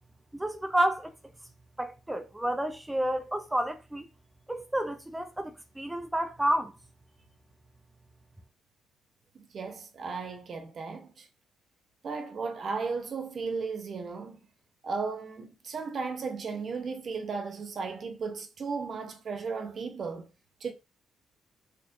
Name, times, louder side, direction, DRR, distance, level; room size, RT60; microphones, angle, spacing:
voice 1, 0.3-1.1 1.8-4.0 4.5-6.7, right 1 dB, 10° right, 0.4 m, -30 dB
voice 2, 9.3-11.3 12.0-14.4 14.8-20.3 20.6-20.7, right 4 dB, 50° right, 0.7 m, -35 dB
4.4 x 2.5 x 2.6 m
cardioid pair, 90°, 0 cm